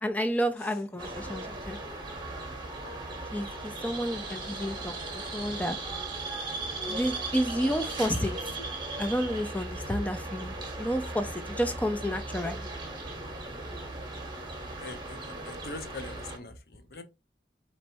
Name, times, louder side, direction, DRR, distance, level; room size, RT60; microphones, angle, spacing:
voice 1, 0.0-1.8 3.3-4.9 5.3-5.8 6.9-8.3 9.0-12.7, equal, 10° left, 0.4 m, -30 dB
sound 1, 1.0-16.4, right 2 dB, 25° right, 0.9 m, -37 dB
voice 2, 14.8-17.0, left 3 dB, 60° left, 0.8 m, -43 dB
4.5 x 3.0 x 2.9 m
head